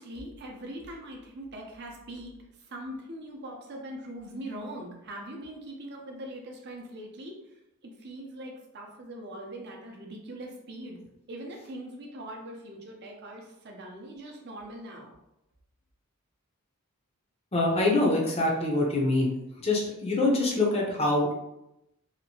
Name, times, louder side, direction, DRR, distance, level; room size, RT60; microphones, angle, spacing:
voice 1, 0.0-2.3 2.7-7.3 7.8-11.0 11.3-15.1, right 1 dB, 50° right, 1 dB, 0.6 m, -41 dB
voice 2, 17.5-19.3 19.6-21.3, left 2 dB, 25° left, -1 dB, 0.6 m, -25 dB
2.9 x 2.6 x 2.7 m, 0.87 s
head